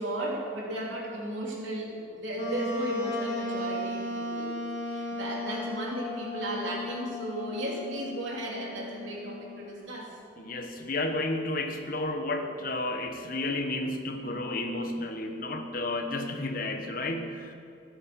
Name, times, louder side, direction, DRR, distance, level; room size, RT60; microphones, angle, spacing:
voice 1, 0.0-4.5 4.9-10.1, right 1 dB, 80° right, -2 dB, 3.2 m, -35 dB
Wind instrument woodwind instrument, 2.4-9.8, left 2 dB, 65° left, 2.7 m, -35 dB
voice 2, 10.4-17.5, left 2 dB, 50° left, 5 dB, 1.2 m, -32 dB
14.5 x 10.5 x 6.8 m, 2.5 s
head